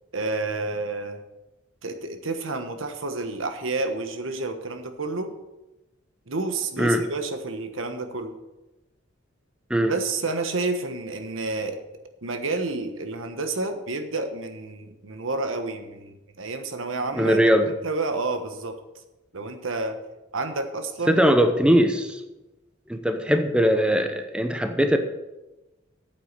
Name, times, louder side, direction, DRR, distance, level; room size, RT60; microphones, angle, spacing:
voice 1, 0.1-1.2 1.8-5.3 6.3-8.4 9.8-11.8 12.2-17.4 17.8-18.8 19.3-20.0 20.3-21.2, right 3 dB, 80° right, 7 dB, 1.3 m, -30 dB
voice 2, 17.1-17.7 21.1-22.2 22.9-25.0, equal, 5° right, 6 dB, 0.8 m, -20 dB
9.1 x 7.6 x 6.8 m, 1.0 s
head